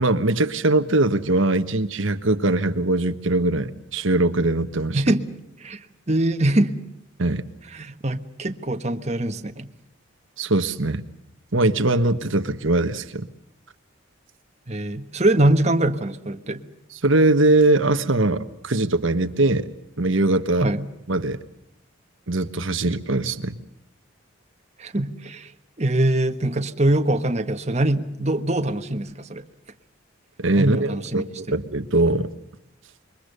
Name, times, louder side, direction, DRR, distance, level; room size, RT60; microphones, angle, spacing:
voice 1, 0.0-5.0 7.2-7.4 10.4-11.0 11.5-13.3 17.0-19.7 20.0-20.7 21.1-21.4 22.3-23.6 30.4-32.3, right 2 dB, 70° right, 9 dB, 1.4 m, -21 dB
voice 2, 4.9-5.3 5.6-5.8 6.1-6.8 7.7-9.7 14.7-16.6 20.6-20.8 24.8-25.5 25.8-29.4 30.6-31.5, right 1 dB, 35° right, 6 dB, 1.4 m, -23 dB
27.5 x 23.0 x 6.8 m, 0.80 s
head